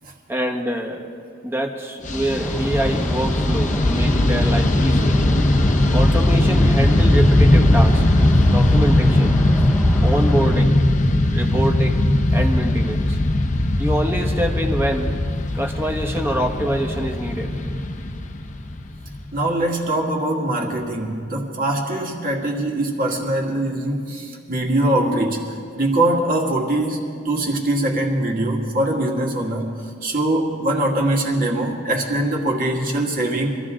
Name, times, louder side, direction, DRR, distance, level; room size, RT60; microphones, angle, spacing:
voice 1, 0.3-1.0 1.4-5.2 5.9-8.0 8.5-9.4 10.0-10.8 11.3-12.0 12.3-13.2 13.8-15.1 15.5-17.5, right 1 dB, 10° right, 3 dB, 1.3 m, -25 dB
Fixed-wing aircraft airplane, 2.0-19.5, left 1 dB, 40° left, 0.8 m, -19 dB
sound 1, 2.4-10.6, left 1 dB, 5° left, 0.8 m, -28 dB
voice 2, 19.3-29.7 30.0-33.6, right 1 dB, 45° right, 0 dB, 2.1 m, -22 dB
25.0 x 14.5 x 3.8 m, 2.3 s
head